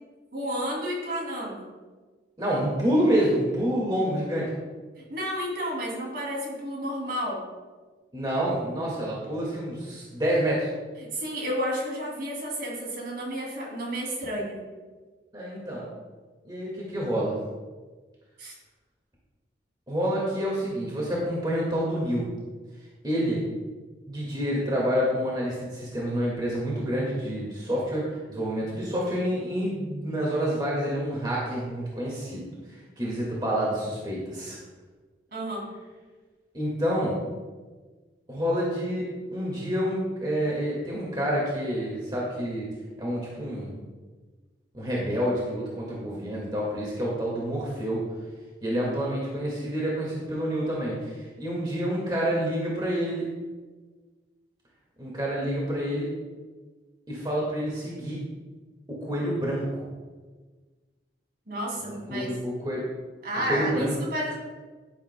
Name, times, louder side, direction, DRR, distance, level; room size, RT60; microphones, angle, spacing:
voice 1, 0.3-1.7 5.0-7.4 11.0-14.6 18.4-18.5 35.3-35.7 61.5-62.3 63.2-64.4, equal, 55° right, -2 dB, 2.8 m, -31 dB
voice 2, 2.4-4.5 8.1-10.7 15.3-15.9 16.4-17.4 19.9-22.3 23.0-23.4 24.1-32.5 33.0-34.6 36.5-37.2 38.3-42.7 43.0-43.8 44.7-48.1 48.6-53.3 55.0-56.1 57.1-58.2 58.9-59.9 61.9-62.9 63.5-63.9, equal, 25° right, -5 dB, 1.9 m, -28 dB
11.0 x 10.5 x 2.2 m, 1.3 s
head